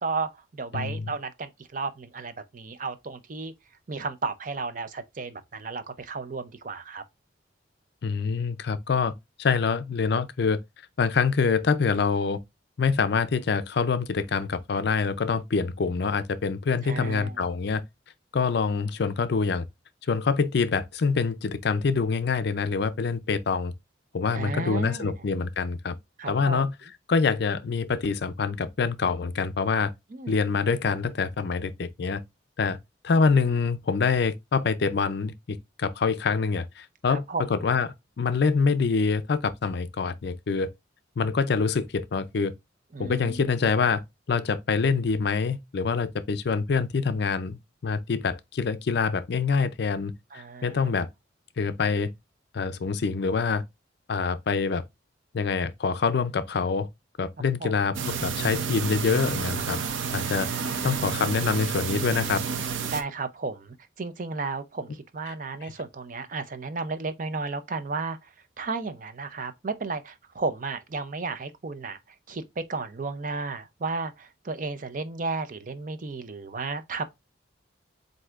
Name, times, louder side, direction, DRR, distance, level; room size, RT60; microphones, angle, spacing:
voice 1, 0.0-3.5 3.9-7.0 16.8-17.4 24.3-25.1 26.2-26.7 30.1-30.4 37.1-37.4 42.9-43.4 50.3-50.9 57.6-57.7 60.4-61.2 62.9-68.3 68.6-72.0 72.3-77.0, right 4 dB, 45° right, 0.6 m, -33 dB
voice 2, 0.7-1.1 8.0-9.1 9.4-10.6 11.0-12.4 12.8-17.8 18.3-19.6 20.1-23.7 24.1-26.0 26.3-26.7 27.1-29.9 30.3-32.2 32.6-32.8 33.0-37.9 38.2-40.7 41.2-42.5 43.0-44.0 44.3-51.1 51.6-52.1 52.5-53.6 54.1-54.8 55.3-56.9 57.2-59.8 60.1-60.5 60.8-62.4, left 5 dB, 60° left, 0.5 m, -25 dB
sound 1, 57.9-63.0, right 6 dB, 90° right, 0.6 m, -30 dB
7.7 x 2.7 x 2.4 m
head